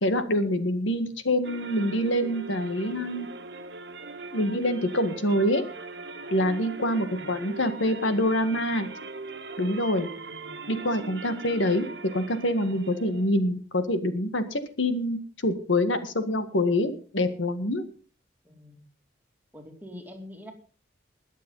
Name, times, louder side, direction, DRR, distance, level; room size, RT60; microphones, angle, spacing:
voice 1, 0.0-3.3 4.3-5.6 6.3-8.9 9.6-10.1 10.7-11.9 12.1-17.8, left 1 dB, 80° left, 9 dB, 1.8 m, -26 dB
sound 1, 1.4-13.3, right 3 dB, 60° right, 1.5 m, -40 dB
voice 2, 10.2-10.6 18.4-18.8 19.5-20.5, left 1 dB, 10° right, 2 dB, 2.6 m, -45 dB
21.0 x 7.5 x 5.6 m, 0.38 s
head